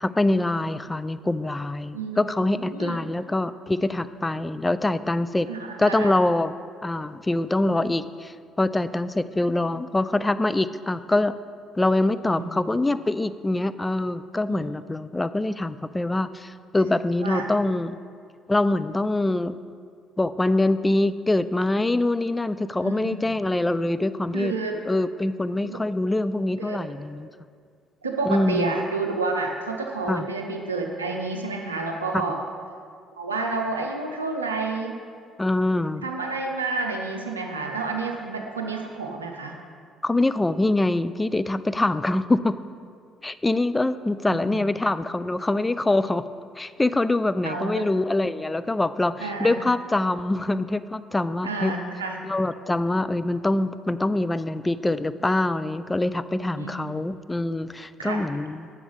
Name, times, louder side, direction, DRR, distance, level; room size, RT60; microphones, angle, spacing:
voice 1, 0.0-5.5 5.8-6.5 6.8-11.3 11.8-18.0 18.5-19.6 20.2-24.5 24.9-27.3 28.2-28.7 30.1-30.3 32.1-32.2 35.4-36.0 40.0-42.6 43.2-46.2 46.6-51.7 52.2-58.7, left 2 dB, 15° left, 13 dB, 0.3 m, -24 dB
voice 2, 1.9-3.0 5.5-6.1 12.2-12.5 14.5-14.7 17.2-17.5 22.8-23.4 24.3-24.8 25.6-25.8 26.6-26.8 28.0-32.4 33.2-34.9 36.0-39.6 44.3-44.7 47.4-47.9 49.2-49.6 51.4-52.2 56.6-56.9 58.0-58.2, right 3 dB, 85° right, 2 dB, 0.6 m, -30 dB
7.1 x 6.1 x 5.4 m, 2.1 s
figure-of-eight pair, 50°, 0 cm